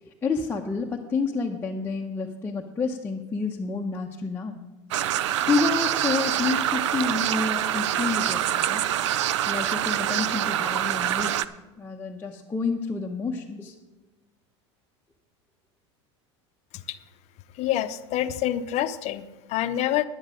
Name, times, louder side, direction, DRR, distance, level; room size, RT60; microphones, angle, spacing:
voice 1, 0.0-4.6 5.5-8.8 9.5-11.4 11.8-13.7, left 4 dB, 15° left, -1 dB, 0.9 m, -29 dB
sound 1, 4.9-11.5, right 12 dB, 85° right, 0.5 m, -25 dB
voice 2, 17.6-20.0, left 12 dB, 50° left, 12 dB, 0.7 m, -27 dB
10.5 x 9.4 x 5.1 m, 1.1 s
supercardioid pair, 105°, 15 cm